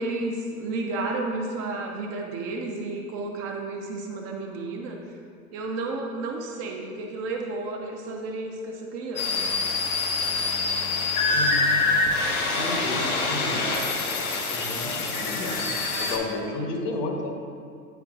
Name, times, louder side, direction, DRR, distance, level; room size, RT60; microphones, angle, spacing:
voice 1, 0.0-5.0 5.5-9.4 16.4-16.7, right 2 dB, 35° right, 1 dB, 0.7 m, -32 dB
sound 1, 9.2-16.2, left 3 dB, 80° left, 1.0 m, -25 dB
voice 2, 11.3-11.6 12.6-13.7 14.5-17.3, left 2 dB, 35° left, 2 dB, 0.9 m, -32 dB
9.1 x 4.5 x 2.4 m, 2.3 s
hypercardioid pair, 100°, 43 cm